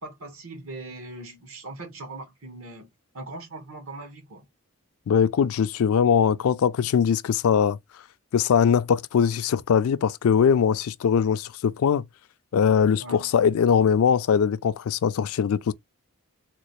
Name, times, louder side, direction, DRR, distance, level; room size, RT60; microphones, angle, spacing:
voice 1, 0.0-2.9 3.1-4.5 13.0-13.3, right 2 dB, 65° right, 1.2 m, -40 dB
voice 2, 5.1-7.8 8.3-12.0 12.5-15.7, left 7 dB, 75° left, 0.3 m, -21 dB
3.7 x 2.4 x 3.0 m
head